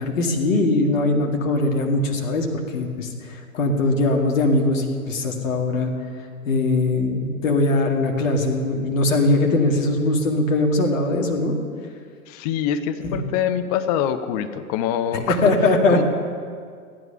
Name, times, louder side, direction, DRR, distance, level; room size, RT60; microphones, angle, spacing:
voice 1, 0.0-2.5 2.7-5.9 6.5-11.5 13.0-13.2 15.3-16.0, left 2 dB, 60° left, 1 dB, 2.2 m, -21 dB
voice 2, 12.3-15.5 15.9-16.0, left 9 dB, 25° left, 9 dB, 0.6 m, -24 dB
15.0 x 11.5 x 5.7 m, 2.1 s
figure-of-eight pair, 110°, 45 cm